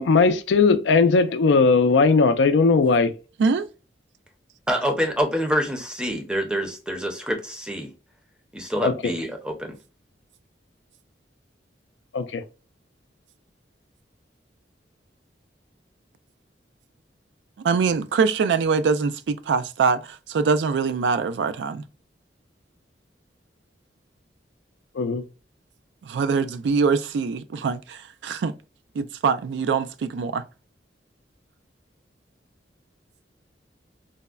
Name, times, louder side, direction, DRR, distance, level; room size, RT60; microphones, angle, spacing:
voice 1, 0.0-3.1 8.8-8.9 12.1-12.4 24.9-25.2, left 4 dB, 90° left, 0.4 m, -18 dB
voice 2, 4.7-7.9 8.5-9.8, equal, 5° right, 0.5 m, -26 dB
voice 3, 17.6-21.8 26.0-28.5 28.9-30.4, right 5 dB, 80° right, 0.3 m, -23 dB
3.4 x 2.1 x 2.2 m
head